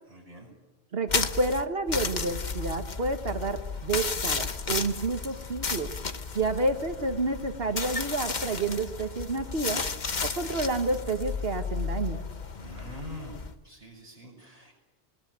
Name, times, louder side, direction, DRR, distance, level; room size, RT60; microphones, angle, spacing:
voice 1, 0.1-0.5 12.6-14.7, equal, 35° right, -6 dB, 6.7 m, -45 dB
voice 2, 0.9-5.9 6.3-9.8 10.2-12.2, right 2 dB, 70° right, 6 dB, 1.7 m, -29 dB
sound 1, 1.1-13.5, left 5 dB, 45° left, 1.2 m, -33 dB
21.5 x 20.5 x 9.5 m, 1.2 s
omnidirectional pair, 1.1 m